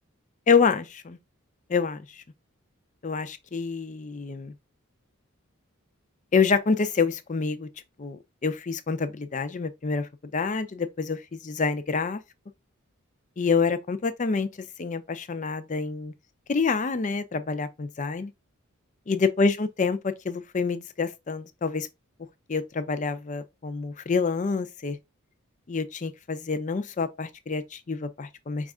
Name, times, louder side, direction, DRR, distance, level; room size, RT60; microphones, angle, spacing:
voice 1, 0.5-1.2 1.7-2.2 3.0-4.5 6.3-7.7 8.0-12.2 13.4-14.5 14.8-16.1 16.5-18.3 19.1-21.9 22.5-25.0 25.7-28.7, left 5 dB, 35° left, 0.5 m, -27 dB
5.2 x 2.4 x 3.5 m
head